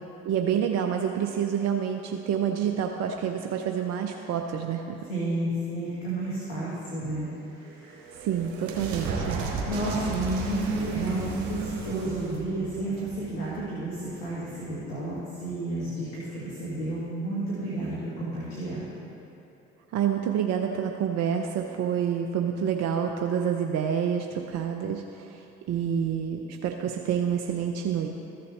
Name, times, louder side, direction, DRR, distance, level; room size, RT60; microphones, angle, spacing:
voice 1, 0.2-5.0 8.2-9.4 19.9-28.1, right 8 dB, 55° right, 4 dB, 0.6 m, -28 dB
voice 2, 5.1-8.0 8.7-8.9 9.6-18.9, right 2 dB, 80° left, -8 dB, 1.7 m, -31 dB
sound 1, 7.5-14.0, right 4 dB, 70° right, 1.4 m, -35 dB
14.0 x 6.7 x 3.3 m, 2.9 s
hypercardioid pair, 50°, 31 cm